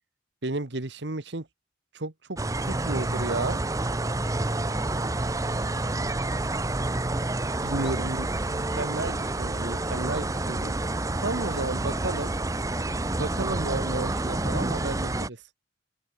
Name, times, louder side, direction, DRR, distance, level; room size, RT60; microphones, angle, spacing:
voice 1, 0.4-1.5 1.9-3.6 7.6-10.8 11.2-12.3 13.2-15.4, right 2 dB, 65° right, 1.4 m, -32 dB
sound 1, 2.4-15.3, right 2 dB, 15° right, 0.7 m, -28 dB
voice 2, 4.6-6.4 7.7-8.1 8.4-9.2 11.5-13.4, left 1 dB, 25° left, 6.6 m, -48 dB
head